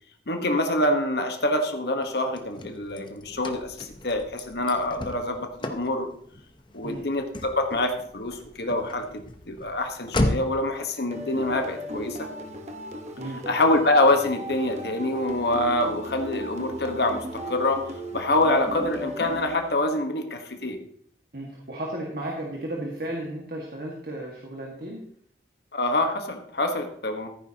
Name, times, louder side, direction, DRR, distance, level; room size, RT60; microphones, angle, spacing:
voice 1, 0.3-6.1 6.7-9.0 9.5-12.3 13.5-20.8 25.7-27.3, left 1 dB, 65° left, 4 dB, 1.3 m, -25 dB
Car / Slam, 2.0-10.7, left 1 dB, 25° left, 0.9 m, -34 dB
sound 1, 11.1-20.0, equal, 40° right, 1.1 m, -37 dB
voice 2, 21.3-25.0, right 1 dB, 55° right, -1 dB, 1.8 m, -34 dB
14.5 x 9.4 x 2.9 m, 0.64 s
head